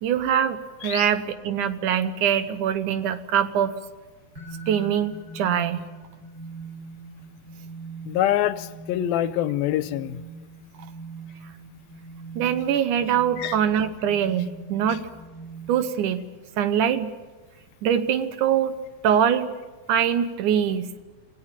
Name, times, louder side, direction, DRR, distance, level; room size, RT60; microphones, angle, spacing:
voice 1, 0.0-3.7 4.7-5.8 12.4-15.0 15.7-16.3 16.6-17.1 17.8-18.8 19.0-19.5 19.9-20.9, right 9 dB, 70° right, 11 dB, 2.2 m, -23 dB
sound 1, 4.3-16.1, right 4 dB, 30° right, 5.5 m, -42 dB
voice 2, 8.1-10.2 13.4-13.6, left 12 dB, 85° left, 14 dB, 2.7 m, -25 dB
27.5 x 18.0 x 8.9 m, 1.3 s
omnidirectional pair, 4.1 m